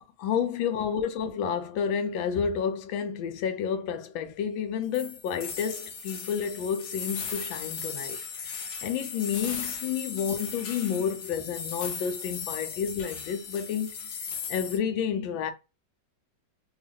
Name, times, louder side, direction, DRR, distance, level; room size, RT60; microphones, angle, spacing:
voice 1, 0.2-14.1 14.5-15.5, left 7 dB, 90° left, 1.4 m, -30 dB
sound 1, 4.9-14.8, left 6 dB, 70° left, 0.7 m, -37 dB
3.5 x 2.3 x 3.4 m
omnidirectional pair, 2.1 m